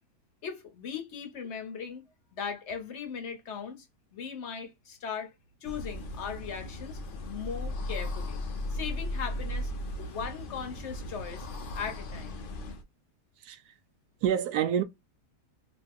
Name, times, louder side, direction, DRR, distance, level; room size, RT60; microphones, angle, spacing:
voice 1, 0.4-2.0 2.3-3.9 4.1-5.3 5.6-7.0 7.3-8.4 8.7-9.7 10.0-11.5 11.7-12.4, left 6 dB, 55° left, 0.9 m, -38 dB
sound 1, 5.6-12.8, left 1 dB, 85° left, 0.4 m, -36 dB
voice 2, 13.4-13.7 14.2-14.8, right 9 dB, 75° right, 1.0 m, -28 dB
3.0 x 2.1 x 3.3 m
omnidirectional pair, 1.8 m